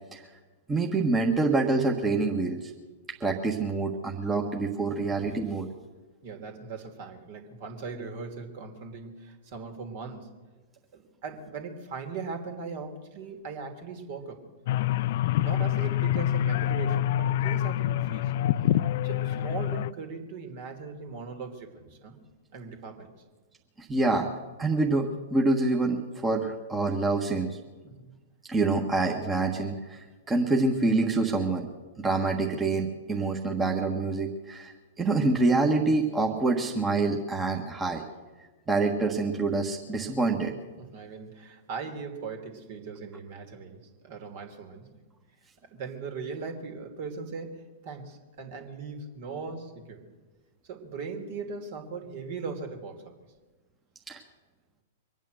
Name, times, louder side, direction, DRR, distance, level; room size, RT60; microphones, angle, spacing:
voice 1, 0.7-2.7 3.2-5.7 23.8-24.3 24.6-27.6 28.5-31.7 32.0-38.0 38.7-40.5 54.1-54.2, right 3 dB, 15° right, 1 dB, 1.5 m, -26 dB
voice 2, 6.2-10.3 10.9-14.4 15.2-18.3 19.0-22.2 22.5-23.1 27.8-28.1 40.8-44.9 45.6-50.1 50.6-53.1, right 4 dB, 50° right, 4 dB, 2.9 m, -39 dB
sound 1, 14.7-19.9, left 12 dB, 50° left, 0.4 m, -26 dB
24.0 x 9.2 x 6.5 m, 1.3 s
figure-of-eight pair, 105°, 0 cm